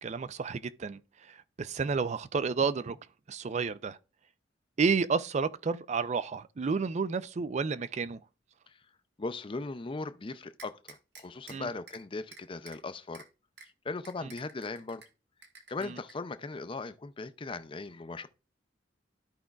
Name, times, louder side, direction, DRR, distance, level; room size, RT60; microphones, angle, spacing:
voice 1, 0.0-3.0 3.3-4.0 4.8-8.2 11.5-11.7 14.2-14.3 15.8-16.0, right 5 dB, 40° right, 0.4 m, -31 dB
voice 2, 9.2-13.3 13.8-15.0 15.7-18.3, left 3 dB, 30° left, 0.5 m, -38 dB
sound 1, 10.6-11.5 11.9-12.0 12.3-12.8 13.1-13.2 13.6-13.7 14.0-15.1 15.4-16.1, right 5 dB, 65° right, 1.2 m, -50 dB
13.5 x 5.0 x 2.3 m
head